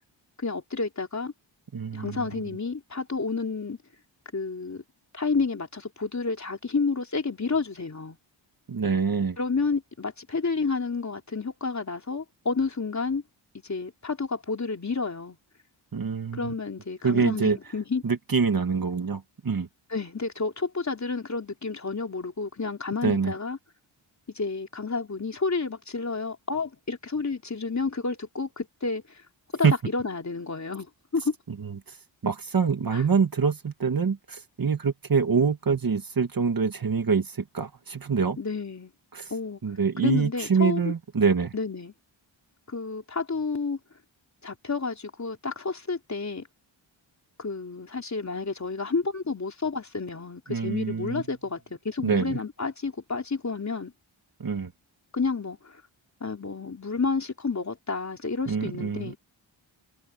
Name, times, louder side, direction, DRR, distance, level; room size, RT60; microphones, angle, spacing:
voice 1, 0.4-1.3 1.9-3.8 4.3-4.8 5.1-8.2 9.4-13.2 13.6-15.4 16.3-18.0 19.9-23.6 24.4-29.0 29.5-31.4 32.9-33.0 38.4-38.9 39.3-39.6 40.0-40.9 41.5-41.9 42.7-43.8 44.4-46.5 47.4-53.9 55.1-55.8 56.2-59.2, left 4 dB, 35° left, 3.6 m, -30 dB
voice 2, 1.7-2.3 8.7-9.4 15.9-16.5 17.0-17.6 18.0-19.7 23.0-23.3 29.6-29.7 31.6-32.0 32.2-38.4 39.1-39.3 39.6-41.5 50.5-51.2 52.0-52.4 54.4-54.7 58.5-59.2, right 5 dB, 45° right, 1.8 m, -25 dB
wide cardioid pair, 115°, 47 cm